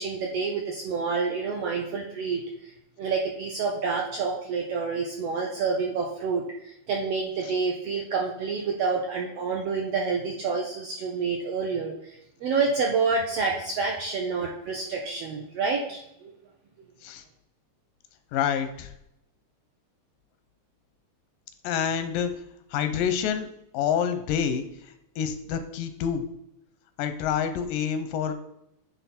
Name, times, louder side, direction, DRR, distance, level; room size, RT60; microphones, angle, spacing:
voice 1, 0.0-2.4 3.0-16.3, right 4 dB, 80° right, 0 dB, 1.4 m, -28 dB
voice 2, 18.3-18.9 21.6-22.3 22.7-23.5 23.7-24.7 25.2-26.2 27.0-28.3, left 8 dB, 90° left, 9 dB, 2.3 m, -27 dB
9.4 x 3.5 x 4.3 m, 0.79 s
omnidirectional pair, 3.7 m